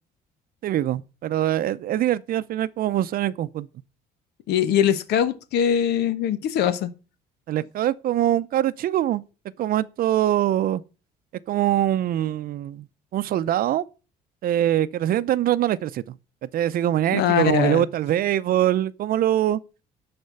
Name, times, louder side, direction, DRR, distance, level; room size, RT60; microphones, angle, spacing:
voice 1, 0.6-3.7 7.5-9.2 9.6-10.8 11.5-12.9 13.1-13.8 14.4-16.0 16.5-19.6, right 12 dB, 60° right, 0.6 m, -23 dB
voice 2, 4.5-6.9 17.1-17.9, left 9 dB, 80° left, 1.1 m, -22 dB
12.0 x 4.4 x 6.8 m
cardioid pair, 110°, 17 cm